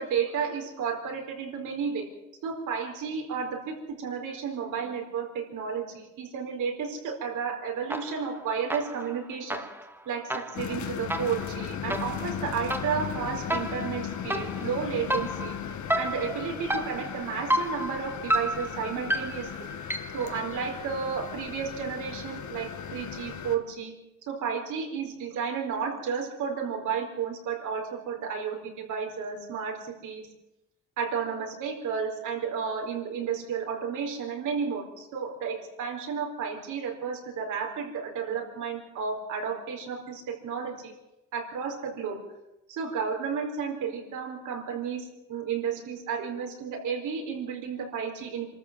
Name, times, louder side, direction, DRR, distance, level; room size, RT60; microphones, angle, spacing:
voice 1, 0.0-2.1 2.4-9.6 10.0-15.6 15.9-19.7 20.1-23.9 24.3-30.3 31.0-40.9 41.3-42.2 42.7-48.6, right 6 dB, 80° right, 2 dB, 4.6 m, -32 dB
sound 1, 7.9-8.4 8.7-20.3, equal, 5° right, 1.9 m, -32 dB
sound 2, 10.5-23.6, left 8 dB, 70° left, 2.0 m, -37 dB
25.5 x 13.5 x 7.7 m, 0.94 s
cardioid pair, 90°, 30 cm